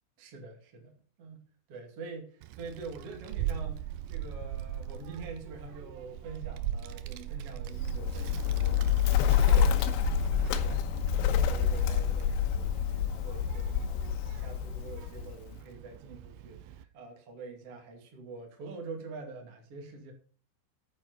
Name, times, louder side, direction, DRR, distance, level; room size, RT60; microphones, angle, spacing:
voice 1, 0.2-1.4 1.7-10.8 11.3-20.1, right 4 dB, 40° right, 1 dB, 2.5 m, -46 dB
Child speech kid speaking, 2.4-16.8, right 11 dB, 80° right, 2.5 m, -40 dB
Bird, 7.8-15.6, left 8 dB, 80° left, 3.4 m, -27 dB
9.0 x 8.9 x 6.8 m, 0.43 s
omnidirectional pair, 5.6 m